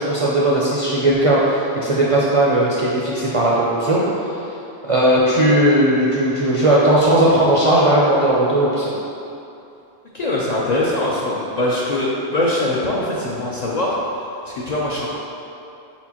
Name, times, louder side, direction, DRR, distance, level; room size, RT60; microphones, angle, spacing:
voice 1, 0.0-4.0 4.9-8.9, right 1 dB, 50° right, -6 dB, 0.4 m, -17 dB
voice 2, 10.1-14.0 14.5-15.1, left 1 dB, 55° left, -5 dB, 0.5 m, -22 dB
4.4 x 4.2 x 2.8 m, 2.8 s
omnidirectional pair, 1.1 m